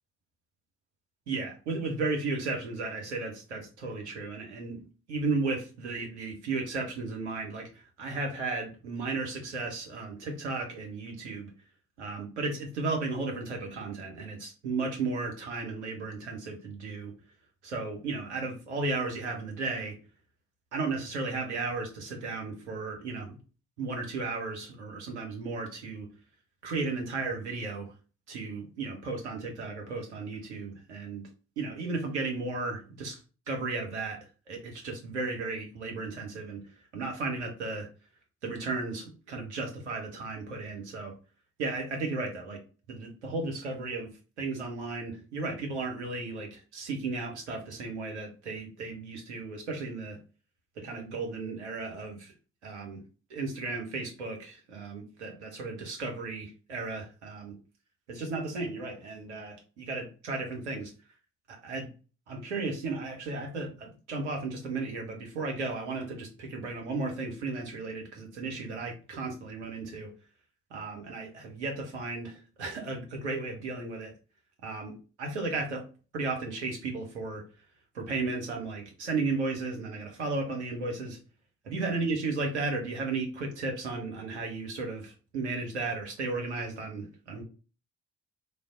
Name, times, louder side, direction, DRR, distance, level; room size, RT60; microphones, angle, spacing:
voice 1, 1.3-11.5 12.0-17.1 17.6-20.0 20.7-23.4 23.8-26.1 26.6-27.9 28.3-31.3 31.6-33.2 33.5-34.2 34.5-36.6 36.9-37.9 38.4-41.1 41.6-42.6 42.9-44.1 44.4-50.2 50.8-52.3 52.6-53.0 53.3-57.6 58.1-60.9 61.5-61.9 62.3-70.1 70.7-74.1 74.6-75.9 76.1-77.4 77.9-81.2 81.6-87.4, right 3 dB, 90° right, 2 dB, 0.7 m, -34 dB
3.3 x 2.2 x 3.6 m, 0.35 s
figure-of-eight pair, 40°, 33 cm